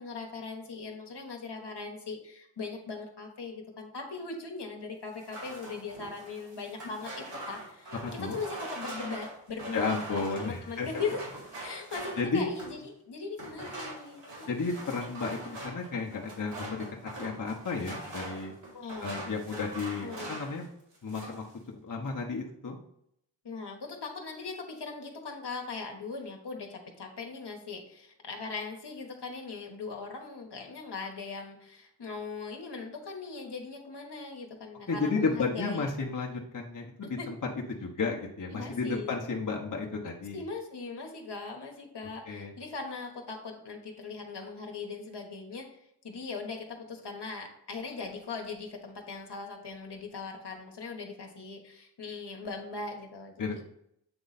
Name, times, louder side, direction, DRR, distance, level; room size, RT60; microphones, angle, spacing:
voice 1, 0.0-7.9 8.2-10.0 10.4-11.2 11.6-14.8 18.7-19.4 20.0-20.4 23.4-35.9 37.2-37.3 38.5-39.2 40.3-45.7 46.0-53.6, left 4 dB, 65° left, 2 dB, 1.3 m, -40 dB
sound 1, 5.1-12.8 13.4-20.6 20.9-21.5, right 1 dB, 75° right, 2.5 m, -42 dB
voice 2, 8.0-8.4 9.7-10.9 12.2-12.5 14.5-18.5 19.0-20.7 21.0-21.4 21.8-22.8 34.9-37.3 37.7-40.4 42.3-42.5 53.4-53.6, left 4 dB, 45° left, -1 dB, 1.0 m, -33 dB
7.9 x 3.1 x 4.1 m, 0.74 s
cardioid pair, 50°, 44 cm